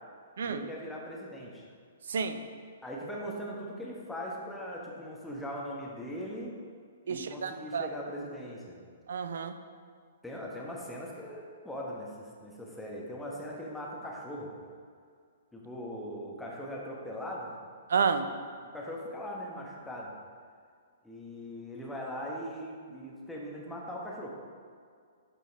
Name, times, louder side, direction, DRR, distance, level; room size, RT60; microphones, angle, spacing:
voice 1, 0.4-1.6 2.8-6.5 7.0-8.7 10.2-14.5 15.5-17.5 18.7-20.1 21.0-24.3, equal, 5° left, -4 dB, 1.3 m, -40 dB
voice 2, 2.1-2.4 7.1-7.9 9.1-9.5 17.9-18.3, right 6 dB, 60° right, 10 dB, 0.5 m, -30 dB
12.0 x 4.5 x 3.5 m, 2.1 s
figure-of-eight pair, 115°, 0 cm